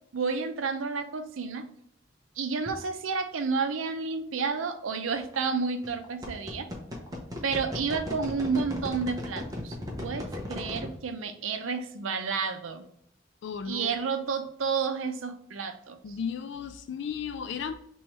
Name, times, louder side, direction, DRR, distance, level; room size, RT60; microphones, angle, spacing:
voice 1, 0.1-1.7 2.4-6.7 7.4-9.8 10.0-12.8 13.7-16.0, right 5 dB, 90° right, 8 dB, 0.6 m, -30 dB
sound 1, 2.7-2.8 5.2-5.4 5.8-11.0, left 1 dB, 20° right, 0.7 m, -36 dB
voice 2, 13.4-14.0 16.0-17.7, left 6 dB, 60° left, 9 dB, 0.3 m, -34 dB
3.5 x 3.0 x 4.3 m, 0.70 s
head